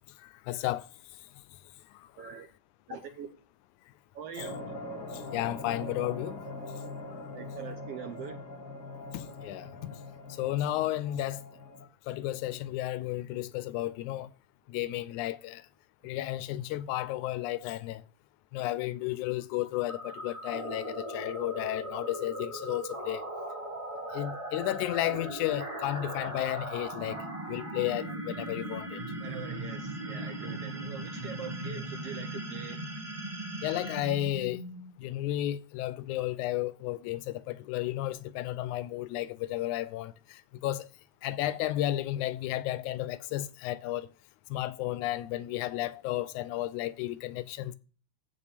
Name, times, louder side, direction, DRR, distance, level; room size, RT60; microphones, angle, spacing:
voice 1, 0.2-0.9 2.2-2.3 4.4-4.5 5.1-6.4 9.1-10.0 10.4-11.4 12.1-14.3 14.7-15.6 16.0-18.0 18.5-23.3 24.1-27.2 27.5-29.0 33.6-34.6 35.0-40.9 41.2-44.1 44.5-47.8, left 14 dB, 85° left, 2.0 m, -33 dB
voice 2, 2.2-2.5 2.9-3.3 4.1-4.6 7.3-8.4 29.2-32.9, right 8 dB, 70° right, 1.5 m, -43 dB
sound 1, 4.4-11.9, left 2 dB, 55° left, 2.7 m, -42 dB
sound 2, 19.9-35.0, right 1 dB, 20° right, 0.8 m, -38 dB
15.0 x 5.3 x 3.4 m
omnidirectional pair, 3.4 m